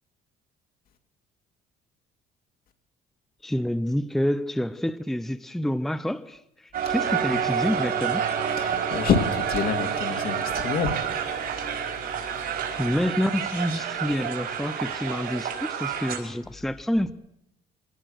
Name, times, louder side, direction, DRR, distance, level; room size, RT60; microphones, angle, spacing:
voice 1, 3.4-8.2 12.3-17.1, equal, ahead, 0.7 m, -28 dB
Crowd, 6.7-16.2, right 7 dB, 65° right, 5.2 m, -28 dB
voice 2, 8.6-11.3, left 6 dB, 60° left, 2.4 m, -27 dB
23.0 x 18.5 x 6.4 m
cardioid pair, 110°, 17 cm